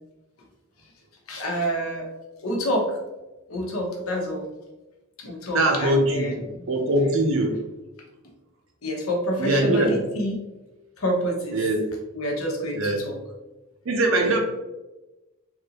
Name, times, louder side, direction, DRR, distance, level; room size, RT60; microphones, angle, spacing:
voice 1, 1.3-2.1 2.4-3.0 3.5-4.5 5.2-6.6 8.8-10.4 11.0-11.6 12.1-13.2 14.2-14.3, equal, 85° left, 0 dB, 0.8 m, -27 dB
voice 2, 5.5-7.6 9.4-10.1 11.5-11.8 12.7-13.0 13.8-14.4, right 1 dB, 70° right, 2 dB, 0.6 m, -22 dB
3.2 x 2.5 x 2.9 m, 1.1 s
head